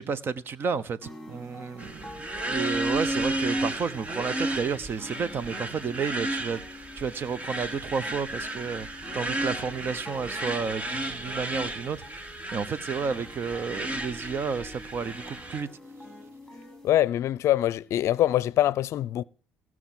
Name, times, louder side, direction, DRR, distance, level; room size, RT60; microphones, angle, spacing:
voice 1, 0.0-2.2 2.4-6.6 7.0-8.9 9.1-15.7, right 5 dB, 45° right, 1.0 m, -31 dB
sound 1, 1.0-17.0, left 1 dB, ahead, 5.3 m, -47 dB
sound 2, 1.8-15.6, right 1 dB, 25° right, 1.6 m, -33 dB
voice 2, 16.8-19.2, left 13 dB, 65° left, 0.5 m, -24 dB
16.5 x 6.2 x 7.5 m
supercardioid pair, 85°, 5 cm